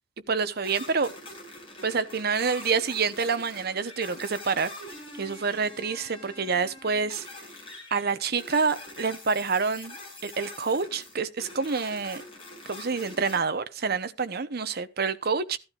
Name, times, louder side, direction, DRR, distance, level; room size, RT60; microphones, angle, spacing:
voice 1, 0.3-1.1 1.8-4.7 5.2-7.3 7.9-10.0 10.2-12.2 12.7-15.6, right 5 dB, 55° right, 0.9 m, -27 dB
sound 1, 0.6-13.4, left 1 dB, 30° left, 5.8 m, -44 dB
15.5 x 12.0 x 2.5 m
head